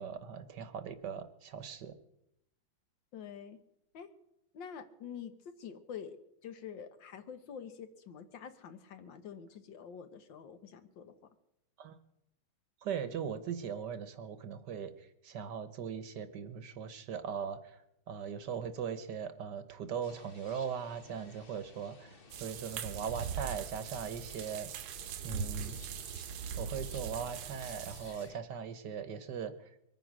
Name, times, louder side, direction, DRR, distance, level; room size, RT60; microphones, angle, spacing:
voice 1, 0.0-1.9 11.8-12.0 12.8-17.8 18.1-24.7 25.2-25.8 26.5-29.7, right 7 dB, 65° right, 12 dB, 1.4 m, -39 dB
voice 2, 3.1-3.6 3.9-4.1 4.5-6.2 6.4-11.1, left 7 dB, 70° left, 10 dB, 1.8 m, -47 dB
sound 1, 20.0-28.4, left 3 dB, 40° left, 0.9 m, -57 dB
sound 2, 22.3-28.3, right 7 dB, 80° right, 1.5 m, -41 dB
23.0 x 9.5 x 6.1 m, 0.81 s
omnidirectional pair, 2.2 m